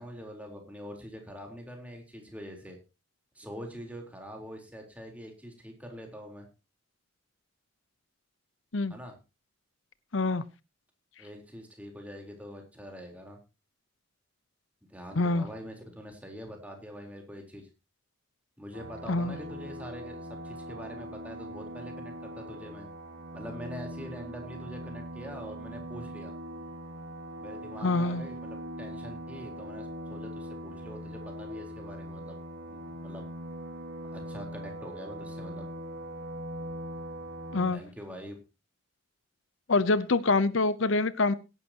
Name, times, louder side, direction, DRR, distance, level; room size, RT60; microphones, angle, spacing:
voice 1, 0.0-2.8 3.4-6.5 8.9-9.2 11.2-13.4 14.9-17.7 18.6-22.9 23.3-26.3 27.4-32.4 32.7-33.2 34.0-35.7 37.7-38.4, equal, 5° right, 2 dB, 3.9 m, -44 dB
voice 2, 10.1-10.4 15.2-15.4 19.1-19.4 27.8-28.2 37.5-37.8 39.7-41.3, left 3 dB, 80° left, 16 dB, 0.8 m, -25 dB
sound 1, 18.7-37.7, equal, 75° right, 2.5 m, -41 dB
17.5 x 11.0 x 2.9 m, 0.29 s
head